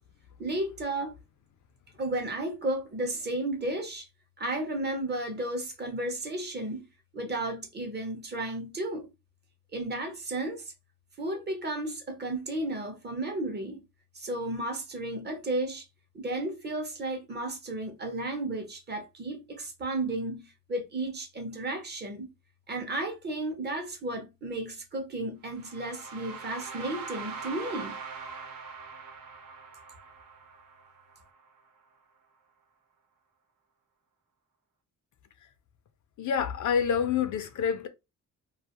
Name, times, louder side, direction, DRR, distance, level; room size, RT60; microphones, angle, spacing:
voice 1, 0.4-1.1 2.0-4.1 4.4-6.8 7.1-9.1 9.7-10.6 11.2-13.8 14.1-15.9 16.1-22.3 22.7-28.0, right 1 dB, 30° right, 0.6 m, -33 dB
sound 1, 25.5-31.5, right 5 dB, 80° right, 0.9 m, -42 dB
voice 2, 36.2-37.9, left 7 dB, 60° left, 0.5 m, -27 dB
2.4 x 2.3 x 2.8 m
wide cardioid pair, 145°, 34 cm